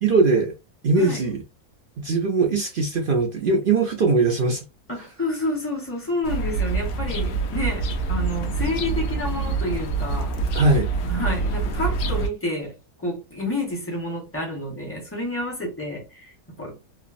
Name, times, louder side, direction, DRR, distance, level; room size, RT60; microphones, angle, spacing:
voice 1, 0.0-0.5 0.8-1.4 2.0-4.6 10.5-10.9, right 3 dB, 70° right, 0.5 m, -20 dB
voice 2, 4.9-10.3 11.0-16.9, left 1 dB, 10° left, 0.9 m, -29 dB
sound 1, 6.2-12.3, right 4 dB, 70° left, 1.1 m, -26 dB
3.3 x 2.0 x 2.4 m
omnidirectional pair, 1.6 m